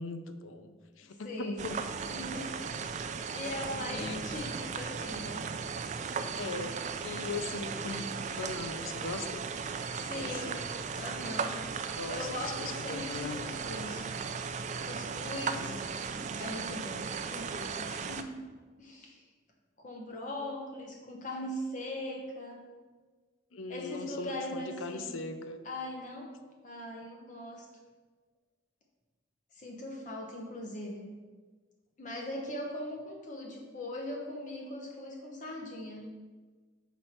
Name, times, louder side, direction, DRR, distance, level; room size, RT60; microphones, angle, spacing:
voice 1, 0.0-1.8 3.9-4.2 6.4-6.8 7.0-9.5 10.0-10.6 11.9-13.4 15.6-15.9 23.5-25.6, left 3 dB, 85° left, 8 dB, 0.6 m, -40 dB
voice 2, 1.0-1.7 2.1-3.1 3.3-5.4 9.9-10.6 11.0-11.6 12.1-14.1 14.8-15.8 16.4-18.4 18.8-19.2 19.8-22.6 23.7-25.2 25.6-26.3 26.6-27.7 29.5-31.1 32.0-36.1, left 1 dB, 40° left, -1 dB, 0.9 m, -40 dB
sound 1, 1.6-18.2, right 5 dB, 35° right, 0.3 m, -36 dB
6.1 x 5.3 x 4.4 m, 1.4 s
head